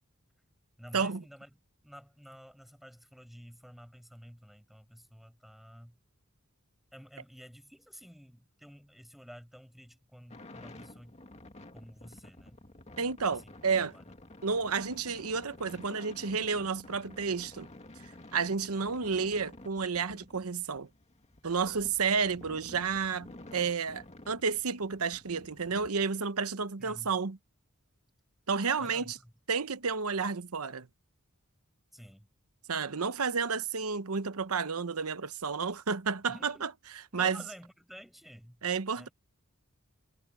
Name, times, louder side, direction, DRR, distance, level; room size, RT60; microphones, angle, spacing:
voice 1, 0.8-6.0 6.9-11.2 11.7-12.6 13.3-13.4 13.9-14.0 26.8-27.1 28.8-29.3 31.9-32.3 36.3-36.7 37.1-38.6 38.9-39.1, equal, ahead, 7.2 m, -51 dB
sound 1, 10.3-25.9, left 1 dB, 30° left, 2.3 m, -51 dB
voice 2, 13.0-13.9 14.4-17.7 18.3-20.9 21.4-27.4 28.5-29.2 29.5-30.9 32.7-36.7 37.1-37.4 38.6-39.1, right 5 dB, 85° right, 1.0 m, -31 dB
head